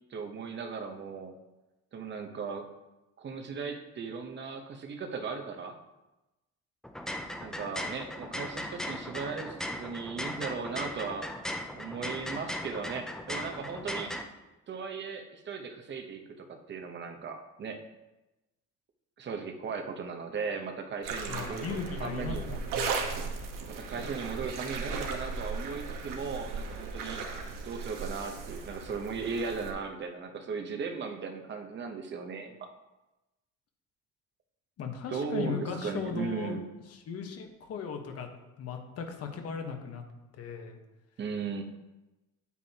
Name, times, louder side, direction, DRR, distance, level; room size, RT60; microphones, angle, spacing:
voice 1, 0.1-1.3 1.9-2.7 3.2-5.8 7.4-11.3 11.7-14.2 14.7-17.8 19.2-22.5 23.7-27.2 27.6-32.7 35.1-36.6 41.2-41.6, right 5 dB, 35° right, 4 dB, 0.9 m, -37 dB
sound 1, 6.8-14.2, left 1 dB, ahead, 0.4 m, -38 dB
sound 2, 21.0-29.7, right 4 dB, 90° right, 1.3 m, -37 dB
voice 2, 21.3-23.1 34.8-36.6 36.9-38.3 38.6-40.0 40.3-40.8, left 6 dB, 50° left, 4 dB, 1.2 m, -37 dB
9.1 x 8.3 x 2.9 m, 1.0 s
cardioid pair, 170°, 32 cm